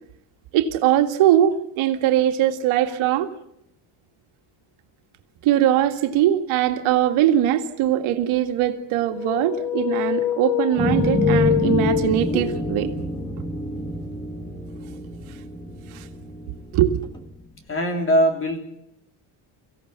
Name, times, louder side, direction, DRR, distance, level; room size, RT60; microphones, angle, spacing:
voice 1, 0.5-3.3 5.4-12.9 15.9-16.0 16.7-17.0, right 11 dB, 80° right, 5 dB, 2.0 m, -21 dB
sound 1, 9.1-12.7, left 10 dB, 90° left, 1.0 m, -25 dB
sound 2, 10.8-17.3, equal, 10° left, 1.4 m, -27 dB
voice 2, 17.7-18.6, equal, 25° left, 5 dB, 3.3 m, -20 dB
24.0 x 16.5 x 8.2 m, 0.79 s
cardioid pair, 155°, 48 cm